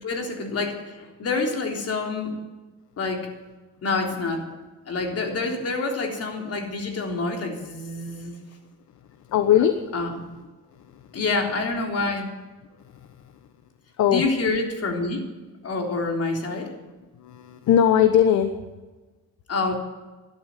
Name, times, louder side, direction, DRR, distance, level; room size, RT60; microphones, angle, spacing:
voice 1, 0.0-2.4 3.0-3.3 3.8-4.4 4.9-8.4 9.9-10.1 11.1-12.3 14.1-15.2 15.6-16.7 19.5-19.8, left 3 dB, 55° left, 2 dB, 3.6 m, -27 dB
voice 2, 9.3-9.8 14.0-14.2 17.2-18.5, left 9 dB, 70° left, 9 dB, 1.0 m, -19 dB
13.0 x 11.5 x 9.1 m, 1.2 s
cardioid pair, 90°, 30 cm